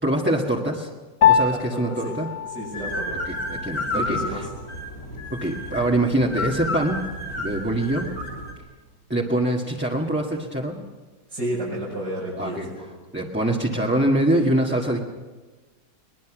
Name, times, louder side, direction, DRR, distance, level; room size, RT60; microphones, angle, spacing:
voice 1, 0.0-0.9 1.3-2.3 3.2-4.4 5.3-7.0 7.4-8.1 9.1-10.8 12.4-12.7 13.1-15.0, right 1 dB, 5° right, -2 dB, 1.6 m, -24 dB
Piano, 1.2-10.8, left 8 dB, 75° left, 1.7 m, -28 dB
voice 2, 1.5-2.1 2.5-3.2 3.9-4.5 11.3-12.9, right 1 dB, 85° right, -6 dB, 6.5 m, -31 dB
sound 1, 2.7-8.5, left 1 dB, 60° left, 3.8 m, -31 dB
21.5 x 21.0 x 6.2 m, 1.3 s
omnidirectional pair, 1.8 m